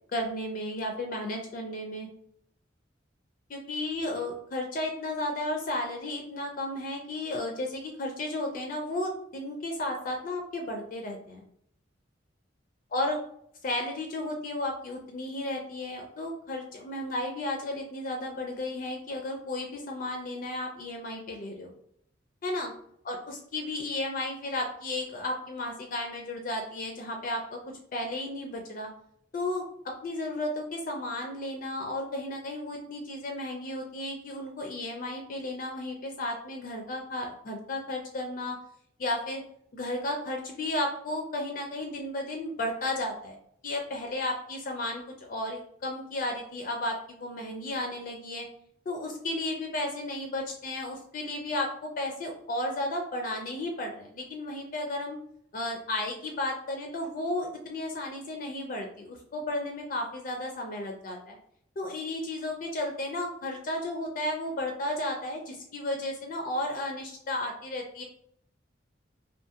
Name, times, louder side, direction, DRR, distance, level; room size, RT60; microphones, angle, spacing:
voice 1, 0.1-2.1 3.5-11.4 12.9-13.2 13.6-21.7 22.4-22.7 23.0-27.6 27.9-28.9 29.3-29.7 30.0-38.6 39.0-39.4 39.7-43.4 43.6-48.5 48.9-55.2 55.5-61.4 61.8-68.0, left 1 dB, 45° left, 2 dB, 0.4 m, -33 dB
2.4 x 2.4 x 2.7 m, 0.69 s
head